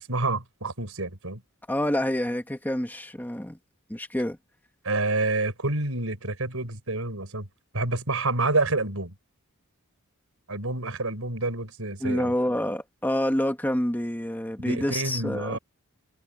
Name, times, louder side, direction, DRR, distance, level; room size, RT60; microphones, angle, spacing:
voice 1, 0.0-1.4 4.8-7.5 7.7-9.1 10.5-12.3 14.6-15.6, right 2 dB, 75° right, 5.2 m, -28 dB
voice 2, 1.7-3.6 3.9-4.4 12.0-15.6, left 1 dB, 10° left, 1.7 m, -27 dB
head